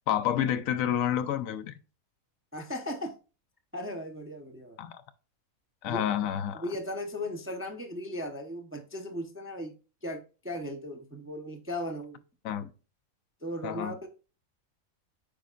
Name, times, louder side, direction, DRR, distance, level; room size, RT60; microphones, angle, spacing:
voice 1, 0.1-1.8 4.8-5.0 5.8-6.6 12.4-12.7 13.6-14.0, left 10 dB, 75° left, 1.0 m, -29 dB
voice 2, 2.5-3.1 3.7-4.8 5.9-6.0 6.5-9.7 10.0-12.2 13.4-14.1, left 1 dB, 15° right, 0.5 m, -37 dB
8.5 x 5.2 x 2.4 m
omnidirectional pair, 1.5 m